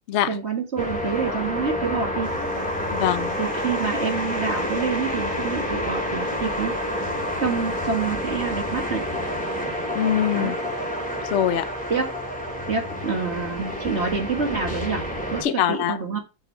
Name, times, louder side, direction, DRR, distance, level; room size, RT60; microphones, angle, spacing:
voice 1, 0.3-2.3 3.4-6.7 7.4-9.0 10.3-10.5 11.9-12.1 12.7-15.0 15.3-16.2, right 5 dB, 35° right, 1.9 m, -27 dB
sound 1, 0.8-15.4, equal, 5° left, 2.0 m, -28 dB
voice 2, 2.9-3.3 9.9-10.5 11.2-11.7 15.4-16.0, left 10 dB, 75° left, 0.6 m, -23 dB
7.6 x 5.8 x 4.5 m
omnidirectional pair, 2.0 m